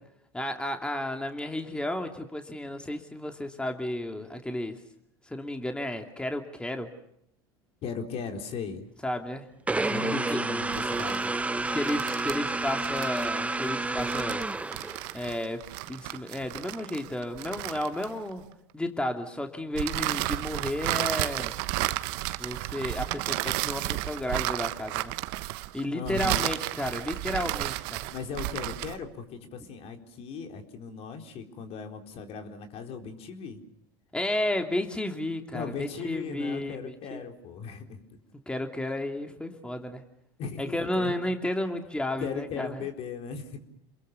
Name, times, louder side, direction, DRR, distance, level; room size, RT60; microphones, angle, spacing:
voice 1, 0.3-4.8 5.3-6.9 9.0-9.5 10.1-10.4 11.7-14.4 15.1-18.4 18.7-21.5 22.4-25.1 25.7-28.0 34.1-36.8 37.1-37.2 38.5-40.0 40.6-42.8, left 1 dB, 5° left, 5 dB, 2.8 m, -32 dB
voice 2, 7.8-8.9 9.8-11.4 25.9-26.5 28.1-33.6 35.5-38.2 40.4-41.2 42.2-43.6, left 6 dB, 50° left, 5 dB, 4.1 m, -38 dB
sound 1, 9.7-15.3, right 3 dB, 10° right, 0.9 m, -30 dB
sound 2, 10.6-18.4 19.8-29.0, right 19 dB, 65° right, 1.2 m, -33 dB
28.5 x 21.5 x 7.0 m, 0.75 s
hypercardioid pair, 85°, 13 cm